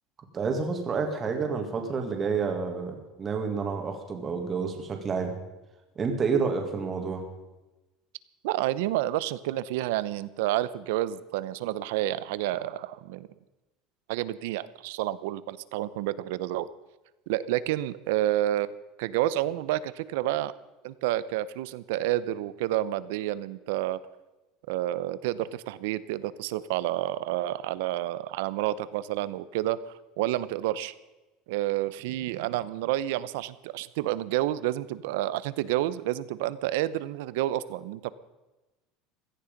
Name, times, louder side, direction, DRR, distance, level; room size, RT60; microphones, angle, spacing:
voice 1, 0.3-5.3 6.0-7.2, right 5 dB, 20° right, 4 dB, 1.9 m, -29 dB
voice 2, 8.4-13.3 14.1-16.7 17.3-18.7 19.0-20.5 20.8-24.0 24.7-30.9 31.5-38.1, right 14 dB, 75° right, 17 dB, 0.8 m, -29 dB
17.0 x 14.5 x 5.2 m, 1.1 s
cardioid pair, 175°, 0 cm